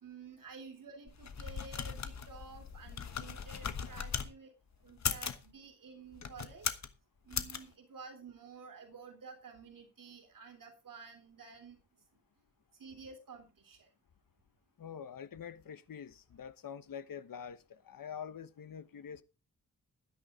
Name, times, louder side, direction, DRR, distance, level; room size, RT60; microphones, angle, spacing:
voice 1, 0.0-4.5 4.8-6.7 7.2-11.8 12.7-13.9, right 5 dB, 70° right, 3.4 m, -51 dB
sound 1, 1.1-4.3 4.9-5.4 6.1-6.9 7.3-7.6, left 6 dB, 55° left, 1.4 m, -38 dB
voice 2, 14.8-19.2, left 8 dB, 75° left, 1.2 m, -46 dB
12.0 x 10.5 x 3.7 m
wide cardioid pair, 165°, 34 cm